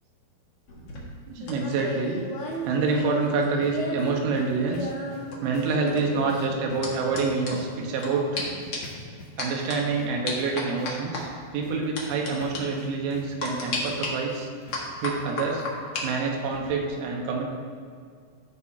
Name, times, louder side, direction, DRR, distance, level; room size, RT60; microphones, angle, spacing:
sound 1, 0.7-4.1 4.4-8.1 8.4-8.5 8.7-9.0 9.4-9.8 10.3-11.2 12.0-12.3 12.5-12.6 13.4-14.1 14.7-16.0 16.4-16.7, left 2 dB, 50° left, 1.8 m, -34 dB
voice 1, 1.3-2.2 2.6-4.9 5.4-8.5 9.4-14.5 15.0-15.7 16.0-17.4, right 4 dB, 90° right, 0 dB, 3.8 m, -27 dB
sound 2, 2.1-15.3 15.6-15.7 16.1-16.2 16.6-16.7, left 2 dB, 70° left, 4.4 m, -48 dB
16.0 x 10.0 x 2.8 m, 2.1 s
omnidirectional pair, 5.3 m